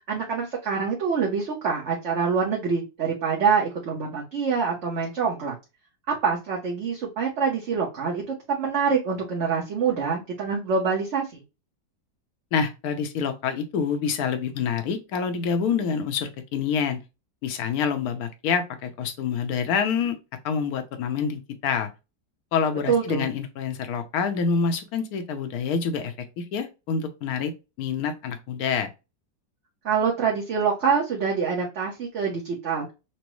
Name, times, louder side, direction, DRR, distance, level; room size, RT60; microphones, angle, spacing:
voice 1, 0.1-5.5 6.1-11.4 22.9-23.3 29.8-32.9, right 6 dB, 50° right, 1.0 m, -25 dB
voice 2, 12.5-17.0 17.4-20.2 20.4-21.9 22.5-27.5 27.8-28.9, left 6 dB, 65° left, 1.1 m, -27 dB
6.1 x 2.1 x 3.0 m
omnidirectional pair, 1.9 m